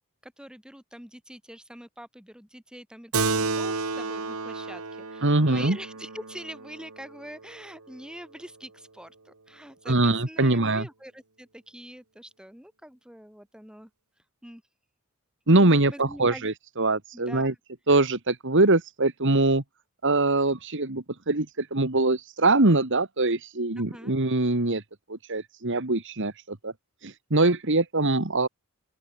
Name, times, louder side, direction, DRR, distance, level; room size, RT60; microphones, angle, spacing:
voice 1, 0.2-13.9 14.4-14.6 15.5-16.5 17.1-17.5 23.8-24.2, equal, 5° right, 4.5 m, -44 dB
Keyboard (musical), 3.1-8.0, right 4 dB, 75° right, 2.2 m, -32 dB
voice 2, 5.2-5.8 9.9-10.9 15.5-17.5 17.9-19.6 20.0-24.8 25.1-26.7 27.0-28.5, right 2 dB, 55° right, 2.1 m, -23 dB
open air
head